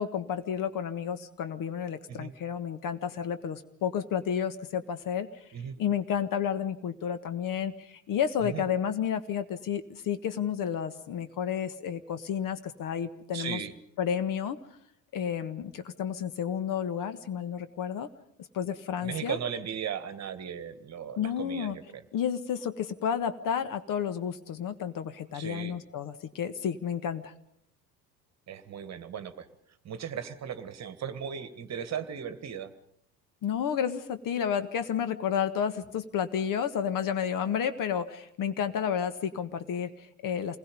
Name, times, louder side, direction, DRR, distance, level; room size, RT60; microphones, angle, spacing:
voice 1, 0.0-5.4 5.8-13.6 14.0-14.6 15.1-18.1 18.5-19.4 21.2-21.8 22.1-27.3 33.4-40.6, left 8 dB, 40° left, 11 dB, 1.6 m, -31 dB
voice 2, 13.3-13.7 19.0-22.0 25.3-25.7 28.5-29.5 29.9-32.7, right 8 dB, 30° right, 11 dB, 1.8 m, -37 dB
28.0 x 20.5 x 5.4 m, 0.72 s
figure-of-eight pair, 70°, 49 cm